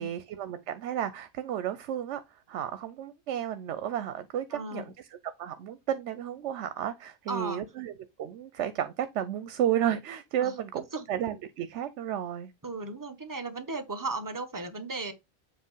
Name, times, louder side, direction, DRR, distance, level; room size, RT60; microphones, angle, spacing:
voice 1, 0.0-5.1 5.4-12.5, right 10 dB, 85° right, 0.9 m, -32 dB
voice 2, 4.5-4.9 7.3-7.7 10.4-10.5 10.9-11.0 12.6-15.1, right 3 dB, 20° right, 1.0 m, -35 dB
7.6 x 3.0 x 5.4 m
omnidirectional pair, 1.2 m